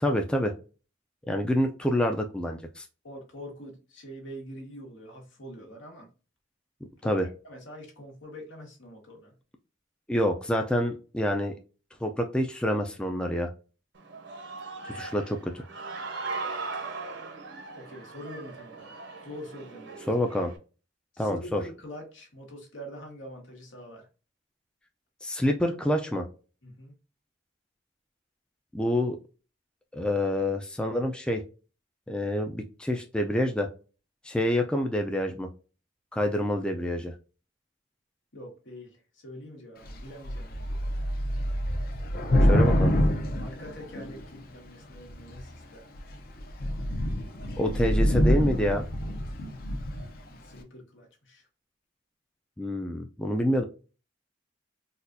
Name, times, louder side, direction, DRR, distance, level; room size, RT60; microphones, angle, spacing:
voice 1, 0.0-0.5 1.3-2.9 7.0-7.3 10.1-11.6 12.0-13.5 14.8-15.6 20.1-20.5 21.2-21.6 25.2-26.3 28.7-29.2 29.9-31.4 32.1-33.7 34.2-35.5 36.1-37.1 42.5-42.9 47.6-48.8 52.6-53.6, left 1 dB, 5° left, 3 dB, 0.3 m, -27 dB
voice 2, 3.0-6.1 7.0-9.3 14.8-15.1 17.7-20.0 21.1-24.1 26.6-26.9 38.3-41.1 43.4-45.9 50.3-51.5, equal, 80° left, 0 dB, 1.4 m, -45 dB
Human voice / Cheering, 14.0-20.6, right 3 dB, 60° right, 0.7 m, -39 dB
Thunder / Rain, 39.8-40.0 40.2-44.4 45.1-45.5 46.0-46.1 46.4-50.1, equal, 50° left, 0.6 m, -26 dB
4.1 x 2.3 x 2.6 m, 0.34 s
head